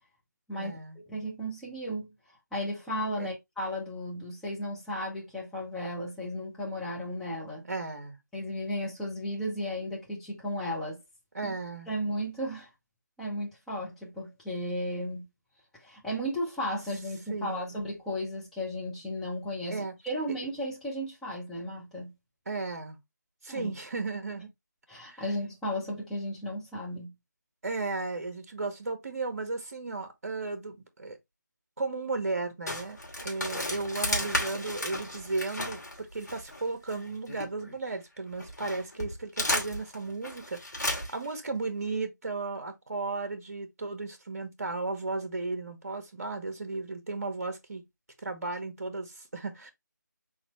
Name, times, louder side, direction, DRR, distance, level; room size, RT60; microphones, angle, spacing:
voice 1, 0.6-1.0 3.2-3.3 7.7-8.2 11.3-11.9 17.3-17.8 19.7-19.9 22.5-23.0 23.4-24.5 25.0-25.3 27.6-31.2 31.8-47.8 48.2-49.7, right 3 dB, 50° right, 1.2 m, -35 dB
voice 2, 1.1-2.1 2.5-7.7 8.3-11.0 11.4-11.5 11.9-12.7 13.2-15.3 15.8-22.1 23.5-23.8 24.9-27.1, equal, 5° left, 0.8 m, -34 dB
sound 1, 32.7-37.9 38.3-41.4, left 1 dB, 65° left, 2.7 m, -34 dB
4.2 x 3.9 x 3.1 m
figure-of-eight pair, 160°, 10 cm